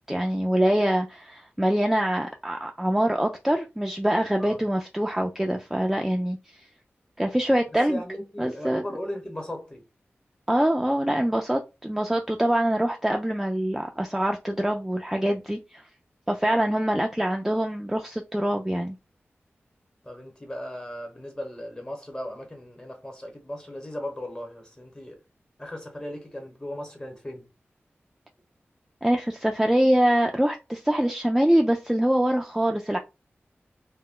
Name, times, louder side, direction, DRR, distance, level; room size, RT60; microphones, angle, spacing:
voice 1, 0.1-6.4 7.2-8.0 8.4-8.8 10.5-15.8 16.3-18.9 29.0-33.0, right 1 dB, 5° right, 0.3 m, -24 dB
voice 2, 7.9-9.9 20.0-25.2 25.6-27.5, left 1 dB, 20° left, 1.0 m, -37 dB
2.1 x 2.1 x 3.7 m
wide cardioid pair, 60°, 4 cm